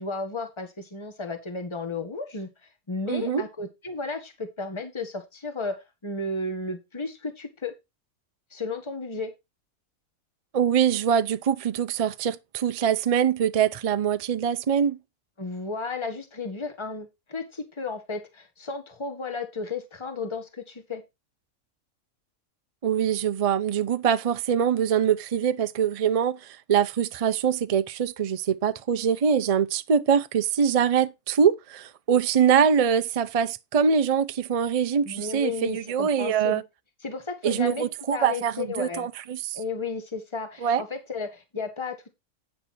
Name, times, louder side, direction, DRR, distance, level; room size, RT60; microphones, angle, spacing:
voice 1, 0.0-2.5 2.9-7.7 8.5-9.3 15.4-21.0 35.1-36.6 37.0-37.9 38.1-39.1 39.5-42.1, left 3 dB, 20° left, 1.7 m, -33 dB
voice 2, 3.1-3.4 10.5-15.0 22.8-36.6 37.4-39.6 40.6-40.8, right 7 dB, 45° right, 0.4 m, -23 dB
9.4 x 6.7 x 4.3 m
omnidirectional pair, 1.5 m